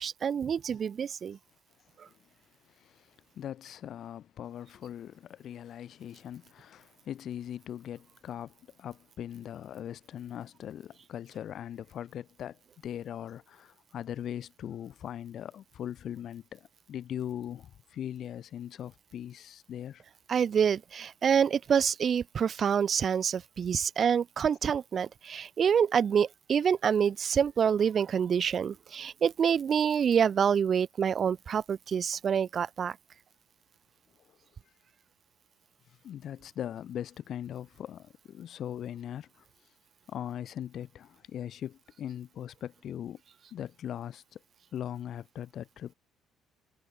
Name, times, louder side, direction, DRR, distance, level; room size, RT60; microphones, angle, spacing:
voice 1, 0.0-1.4 2.0-2.1 20.3-33.0, right 7 dB, 45° right, 0.4 m, -27 dB
voice 2, 2.6-20.0 22.5-22.6 34.3-34.4 36.0-39.4 40.1-43.2 43.5-44.4 44.7-45.9, left 10 dB, 60° left, 2.1 m, -40 dB
cardioid pair, 105°, 0 cm